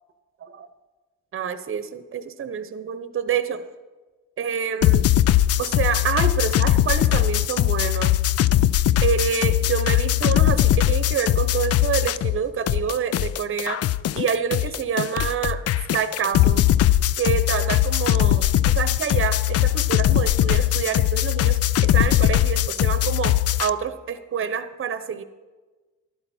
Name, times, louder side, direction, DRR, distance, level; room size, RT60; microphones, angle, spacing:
voice 1, 1.3-3.6 4.4-5.1 5.6-8.2 9.0-13.8 14.1-15.6 15.9-16.6 17.2-25.2, right 7 dB, 45° right, 11 dB, 0.9 m, -27 dB
sound 1, 4.8-12.4 12.7-23.7, left 13 dB, 55° left, 0.4 m, -20 dB
12.0 x 11.5 x 4.3 m, 1.3 s
cardioid pair, 90°, 30 cm